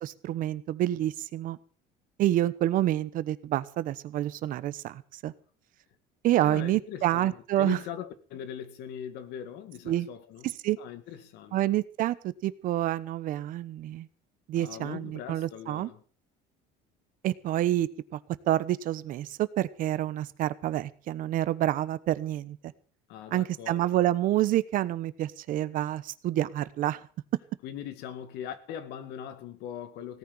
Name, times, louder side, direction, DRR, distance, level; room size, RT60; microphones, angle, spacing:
voice 1, 0.0-1.6 2.2-5.3 6.2-7.8 9.9-10.1 10.4-10.8 11.5-14.1 14.5-15.9 17.2-18.2 18.5-22.6 23.3-27.0, right 13 dB, 50° right, 1.0 m, -28 dB
voice 2, 6.4-10.5 10.8-11.6 14.5-16.0 23.1-23.9 27.6-30.2, left 9 dB, 65° left, 2.2 m, -40 dB
17.5 x 10.0 x 7.1 m
cardioid pair, 160°, 18 cm